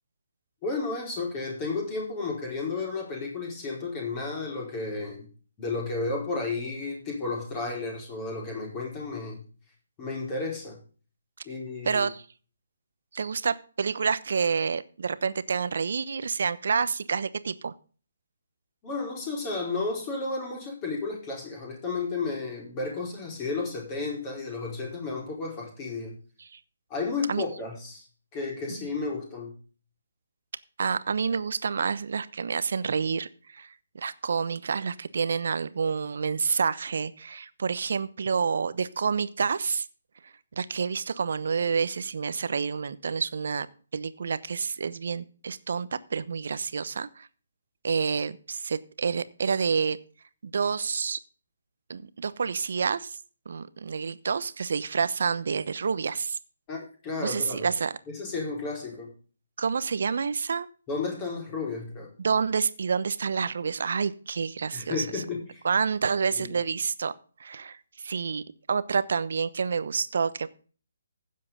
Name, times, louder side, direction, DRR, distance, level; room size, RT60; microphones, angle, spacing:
voice 1, 0.6-5.3 5.6-9.4 10.0-10.8 11.4-12.1 18.8-26.2 26.9-28.1 28.3-29.5 56.7-57.7 58.1-59.1 60.9-62.1 64.7-65.6 66.3-66.6, left 3 dB, 25° left, -1 dB, 4.8 m, -32 dB
voice 2, 11.8-12.2 13.1-17.7 26.4-26.6 27.3-27.4 30.8-39.9 40.2-43.7 43.9-47.3 47.8-50.0 50.4-51.2 51.9-53.2 53.5-56.4 57.2-57.9 59.6-60.7 62.2-65.2 65.6-67.1 67.4-68.4 68.7-70.5, right 5 dB, 60° right, 15 dB, 1.0 m, -28 dB
15.5 x 7.5 x 3.8 m, 0.39 s
figure-of-eight pair, 140°, 0 cm